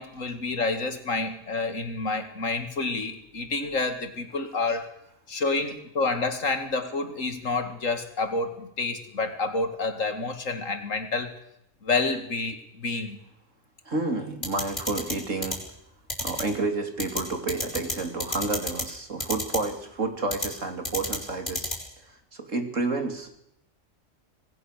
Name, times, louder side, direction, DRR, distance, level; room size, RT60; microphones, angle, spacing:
voice 1, 0.0-4.9 5.3-11.4 11.8-13.2, left 3 dB, 85° left, 8 dB, 2.6 m, -29 dB
voice 2, 13.8-15.6 16.2-21.7 22.0-23.3, right 3 dB, 80° right, 5 dB, 3.5 m, -30 dB
sound 1, 14.4-15.1 15.4-15.5 16.1-16.4 17.0-17.2 17.5-17.9 18.2-18.8 19.2-19.6 20.3-20.5 20.8-21.2 21.5-21.7, left 1 dB, 40° left, 6.1 m, -28 dB
26.5 x 19.5 x 6.7 m, 0.79 s
omnidirectional pair, 1.3 m